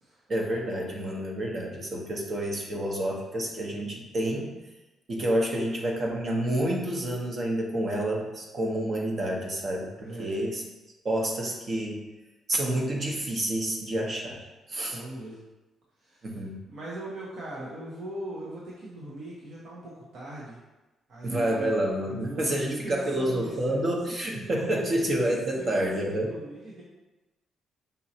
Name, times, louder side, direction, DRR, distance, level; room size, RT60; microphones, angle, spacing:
voice 1, 0.3-4.5 5.1-10.6 11.0-12.1 12.5-15.0 16.2-16.6 21.2-26.3, right 1 dB, 45° right, 0 dB, 0.9 m, -29 dB
voice 2, 10.0-10.4 14.8-15.4 16.0-16.4 16.7-20.6 21.1-21.7 22.2-25.1 25.6-26.8, right 1 dB, 65° right, -6 dB, 0.9 m, -40 dB
5.4 x 3.0 x 2.8 m, 1.1 s
cardioid pair, 90°, 0 cm